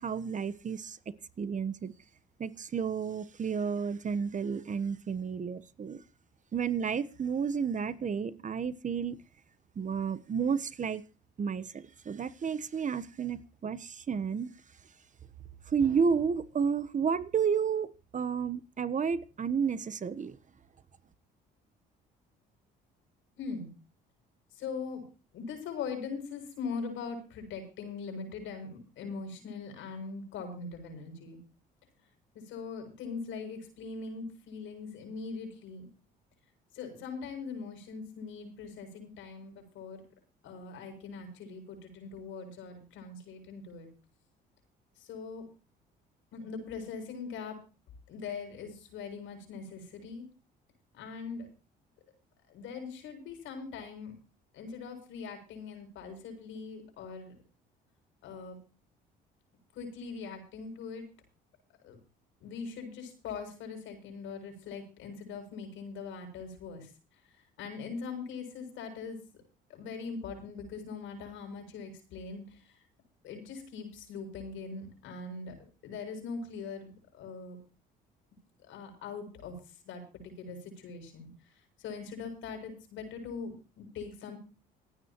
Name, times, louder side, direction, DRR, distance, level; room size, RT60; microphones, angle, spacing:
voice 1, 0.0-1.9 2.4-6.0 6.5-9.2 9.8-11.0 11.4-14.5 15.7-20.4, right 6 dB, 40° right, 1.1 m, -31 dB
voice 2, 23.4-23.7 24.6-25.0 25.3-31.4 32.3-35.9 36.7-40.1 40.4-43.9 45.0-45.5 46.3-47.6 48.1-50.3 50.9-51.5 52.5-54.1 54.5-57.4 58.2-58.6 59.8-61.1 61.8-62.0 62.4-66.9 67.6-69.2 69.7-72.4 73.2-75.5 75.8-77.6 78.7-79.6 79.9-81.3 81.8-84.4, left 5 dB, 70° left, 7.3 m, -41 dB
27.0 x 9.4 x 3.1 m
supercardioid pair, 75°, 21 cm